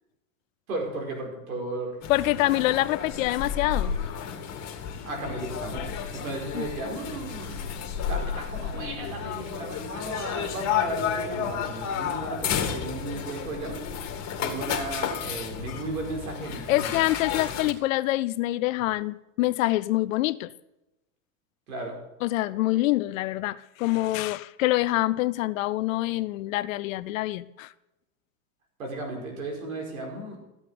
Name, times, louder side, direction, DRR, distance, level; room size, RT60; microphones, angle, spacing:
voice 1, 0.7-1.9 5.0-7.6 8.1-13.8 14.4-16.9 21.7-22.0 28.8-30.4, right 2 dB, 90° right, 5.0 m, -35 dB
sound 1, 2.0-17.7, left 7 dB, 40° left, 2.2 m, -32 dB
voice 2, 2.1-4.0 6.5-6.6 16.7-20.5 22.2-27.7, left 17 dB, 70° left, 0.8 m, -26 dB
14.0 x 8.2 x 5.2 m
hypercardioid pair, 110°, 41 cm